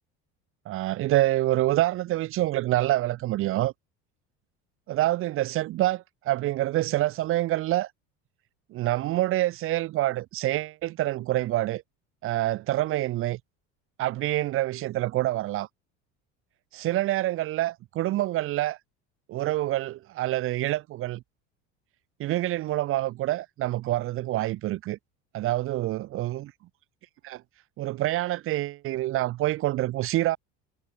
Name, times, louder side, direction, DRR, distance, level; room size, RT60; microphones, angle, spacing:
voice 1, 0.7-3.7 4.9-7.9 8.7-11.8 12.2-13.4 14.0-15.7 16.7-18.8 19.3-21.2 22.2-25.0 25.3-26.5 27.2-27.4 27.8-30.4, right 15 dB, 45° right, 1.1 m, -26 dB
cardioid pair, 145°, 30 cm